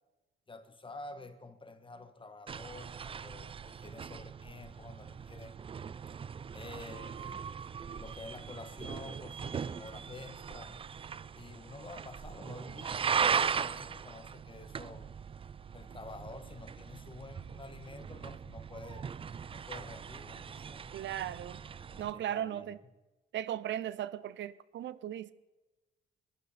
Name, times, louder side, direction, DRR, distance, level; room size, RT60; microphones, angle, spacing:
voice 1, 0.5-5.6 6.5-7.4 8.0-10.8 11.3-15.2 15.7-19.1 19.5-21.0 21.3-21.4 21.9-22.7, left 3 dB, 25° left, 1.4 m, -49 dB
sound 1, 2.5-22.1, right 6 dB, 30° right, 0.4 m, -39 dB
voice 2, 20.9-21.6 22.0-22.8 23.3-25.3, right 11 dB, 70° right, 0.6 m, -37 dB
21.0 x 12.0 x 4.2 m
cardioid pair, 90°, 20 cm